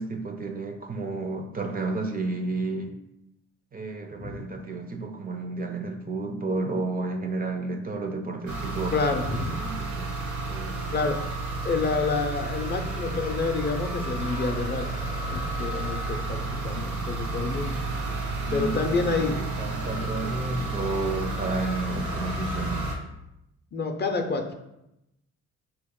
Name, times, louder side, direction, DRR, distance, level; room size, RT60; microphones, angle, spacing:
voice 1, 0.0-2.9 3.7-10.1 10.5-11.0 18.4-22.9, right 3 dB, 30° right, 5 dB, 0.4 m, -32 dB
sound 1, 8.5-23.0, right 2 dB, 90° right, 1.0 m, -31 dB
voice 2, 8.9-9.6 10.9-11.2 11.6-17.8 18.5-19.4 23.7-24.5, left 4 dB, 35° left, 5 dB, 0.5 m, -28 dB
4.0 x 3.0 x 3.6 m, 0.86 s
cardioid pair, 90°, 30 cm